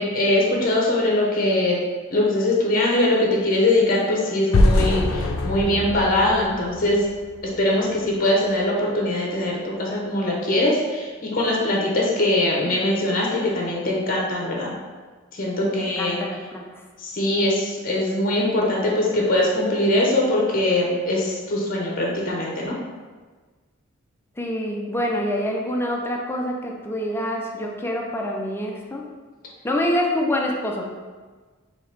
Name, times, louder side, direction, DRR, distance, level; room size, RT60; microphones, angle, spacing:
voice 1, 0.0-1.8 2.1-7.1 7.4-14.7 15.3-16.2 17.0-22.7, left 1 dB, 45° left, -3 dB, 0.7 m, -22 dB
sound 1, 4.5-7.5, left 1 dB, 80° left, 0.4 m, -22 dB
voice 2, 15.6-16.8 24.4-29.1 29.6-30.9, left 1 dB, 10° left, 0 dB, 0.4 m, -26 dB
4.2 x 2.8 x 3.3 m, 1.4 s
head